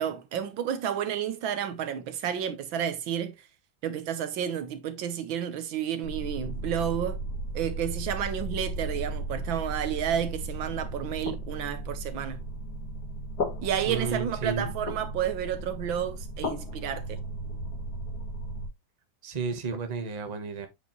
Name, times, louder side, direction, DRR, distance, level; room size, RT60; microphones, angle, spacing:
voice 1, 0.0-3.5 3.8-7.2 7.5-12.4 13.6-17.2, right 9 dB, 85° right, 1.7 m, -31 dB
sound 1, 6.0-18.7, right 1 dB, 55° left, 2.2 m, -35 dB
voice 2, 13.9-14.7 19.2-20.7, right 5 dB, 25° right, 1.1 m, -32 dB
8.3 x 5.2 x 3.0 m
omnidirectional pair, 2.1 m